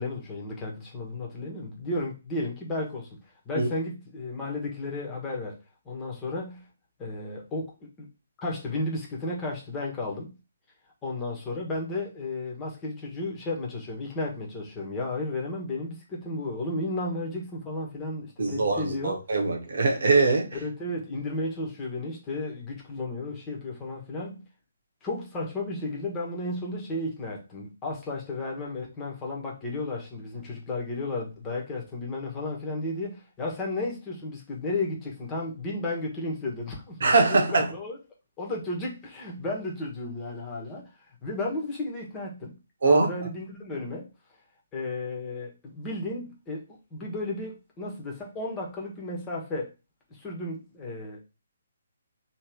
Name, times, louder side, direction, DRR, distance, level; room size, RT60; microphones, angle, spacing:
voice 1, 0.0-5.6 5.8-6.7 7.0-8.1 8.4-10.4 11.0-19.1 20.6-24.5 25.0-37.0 37.3-38.0 38.4-42.6 42.9-44.1 44.7-49.7 50.1-51.2, left 2 dB, 15° left, 1.4 m, -33 dB
voice 2, 18.4-20.5 37.0-37.7 42.8-43.1, right 3 dB, 60° right, 1.4 m, -22 dB
3.2 x 3.2 x 4.6 m
figure-of-eight pair, 135°, 0 cm